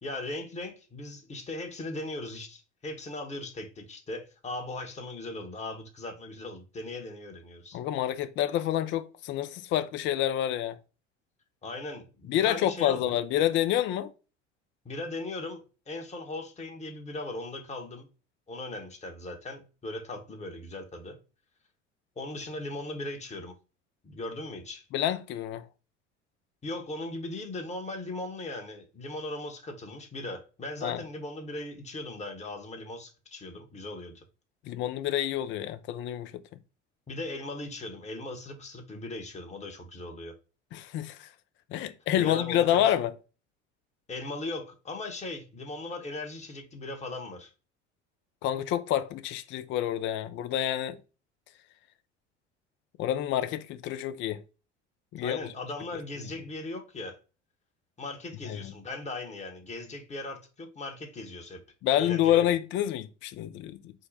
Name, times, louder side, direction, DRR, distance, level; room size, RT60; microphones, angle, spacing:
voice 1, 0.0-7.8 11.6-13.0 14.8-18.1 18.5-21.2 22.2-23.5 24.0-24.9 26.6-34.2 37.1-40.3 42.2-42.8 44.1-47.5 55.2-57.2 58.0-61.6 62.0-62.5, left 2 dB, 20° left, 1.0 m, -38 dB
voice 2, 7.7-10.8 12.3-14.1 24.9-25.7 30.8-31.0 34.7-36.4 40.7-41.3 41.7-43.1 48.4-51.0 53.0-54.4 55.1-55.4 58.5-58.7 61.8-63.9, left 11 dB, 35° left, 0.4 m, -28 dB
3.7 x 2.1 x 3.9 m
figure-of-eight pair, 65°, 36 cm